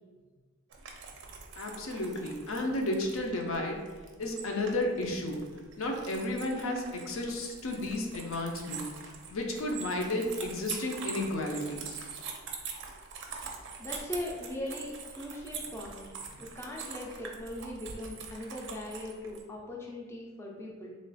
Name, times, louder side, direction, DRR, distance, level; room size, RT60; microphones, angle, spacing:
sound 1, 0.7-19.4, right 5 dB, 55° right, 0.4 m, -44 dB
voice 1, 1.6-3.8 4.2-5.4 5.8-8.8 9.3-12.0, left 1 dB, 70° left, 1 dB, 0.5 m, -32 dB
voice 2, 13.8-16.1 16.4-21.0, left 1 dB, 10° left, -3 dB, 0.4 m, -40 dB
3.1 x 2.3 x 4.0 m, 1.4 s
head